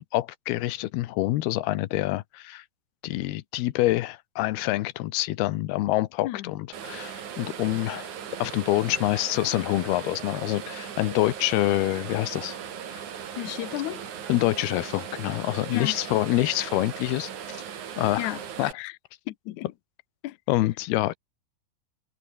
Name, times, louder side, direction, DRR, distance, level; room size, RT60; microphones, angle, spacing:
voice 1, 0.0-2.6 3.0-8.1 8.4-12.6 12.9-13.0 14.3-17.3 18.0-18.2 18.6-18.7 20.5-21.1, left 17 dB, 90° left, 2.9 m, -26 dB
sound 1, 6.7-18.7, right 8 dB, 55° right, 3.5 m, -38 dB
voice 2, 13.4-14.0 15.7-16.0 18.2-18.4 18.7-19.0 19.3-19.7 20.2-20.4, left 16 dB, 75° left, 1.9 m, -32 dB
omnidirectional pair, 4.4 m